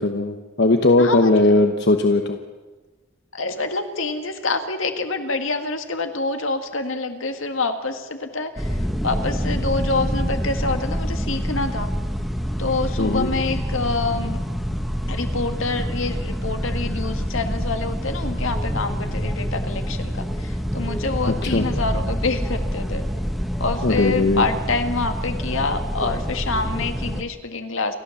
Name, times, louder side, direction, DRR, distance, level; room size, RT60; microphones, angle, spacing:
voice 1, 0.0-2.4 13.0-13.3 21.3-21.7 23.8-24.5, left 2 dB, 55° left, 5 dB, 1.1 m, -18 dB
voice 2, 1.0-1.3 3.3-8.7 9.0-11.9 12.6-14.4 15.1-23.0 23.6-27.9, left 3 dB, 70° left, 7 dB, 1.8 m, -26 dB
sound 1, 8.6-27.2, equal, ahead, 1.2 m, -26 dB
29.0 x 12.5 x 7.2 m, 1.2 s
head